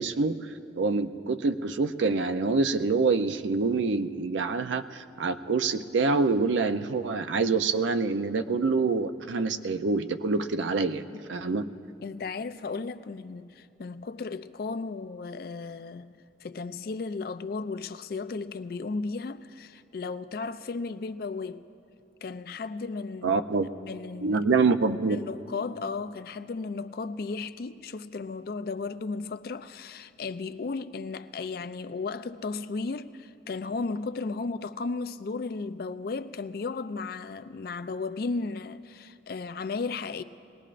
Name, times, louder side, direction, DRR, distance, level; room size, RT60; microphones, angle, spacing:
voice 1, 0.0-11.0 11.3-11.7 23.2-23.7 24.2-25.2, right 4 dB, 85° right, 0.5 m, -26 dB
voice 2, 10.8-11.2 12.0-16.1 16.4-21.7 22.2-23.4 23.8-24.4 25.1-40.2, left 4 dB, 55° left, 0.4 m, -35 dB
22.5 x 19.0 x 2.5 m
head